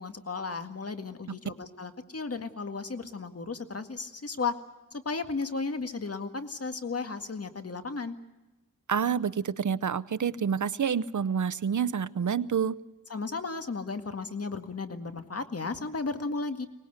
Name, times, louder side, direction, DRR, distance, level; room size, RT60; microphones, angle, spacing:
voice 1, 0.0-4.5 4.9-8.2 13.1-16.7, left 4 dB, 45° left, 8 dB, 1.9 m, -34 dB
voice 2, 8.9-12.7, right 7 dB, 65° right, 17 dB, 0.8 m, -28 dB
24.0 x 19.5 x 8.1 m, 1.0 s
wide cardioid pair, 70°, 32 cm